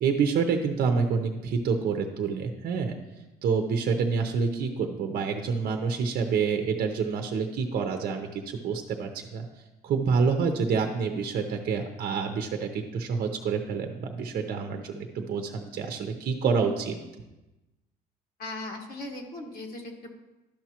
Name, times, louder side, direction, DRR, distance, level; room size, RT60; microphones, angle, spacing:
voice 1, 0.0-2.9 3.4-9.4 9.8-17.0, right 5 dB, 60° right, 4 dB, 0.7 m, -27 dB
voice 2, 18.4-20.1, left 2 dB, 60° left, 2 dB, 1.5 m, -38 dB
12.0 x 5.9 x 2.9 m, 1.0 s
cardioid pair, 110°, 17 cm